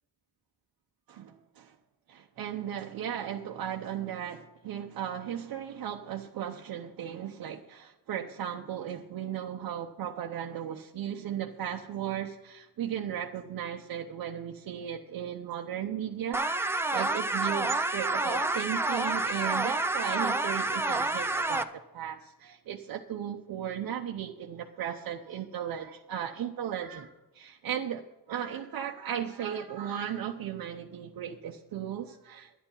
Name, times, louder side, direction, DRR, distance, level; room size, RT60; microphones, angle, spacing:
voice 1, 1.1-1.7 2.1-32.6, right 9 dB, 80° right, 1 dB, 0.9 m, -36 dB
sound 1, 16.3-21.6, right 2 dB, 5° right, 0.6 m, -29 dB
11.5 x 10.5 x 5.5 m, 1.0 s
wide cardioid pair, 145°, 35 cm